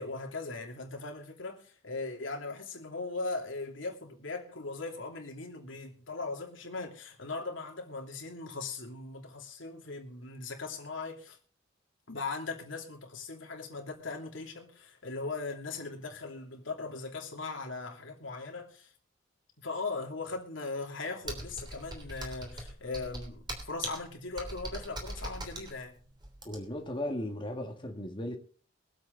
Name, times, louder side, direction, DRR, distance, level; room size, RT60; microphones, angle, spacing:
voice 1, 0.0-11.4 12.1-18.9 19.6-26.0, left 3 dB, 80° left, 3.0 m, -39 dB
Computer keyboard, 21.2-26.9, right 1 dB, 25° right, 3.2 m, -41 dB
voice 2, 26.5-28.4, left 1 dB, 25° left, 1.8 m, -36 dB
23.0 x 8.1 x 4.0 m
head